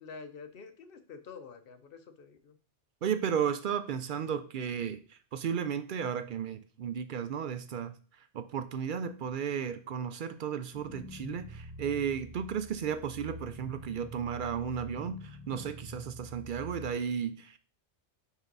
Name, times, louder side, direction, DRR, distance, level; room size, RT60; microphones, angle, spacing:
voice 1, 0.0-2.6, left 5 dB, 55° left, 0.9 m, -48 dB
voice 2, 3.0-7.9 8.3-17.6, right 7 dB, 60° right, 0.5 m, -34 dB
sound 1, 10.7-16.9, equal, 5° right, 0.8 m, -46 dB
5.6 x 4.4 x 3.9 m
omnidirectional pair, 1.2 m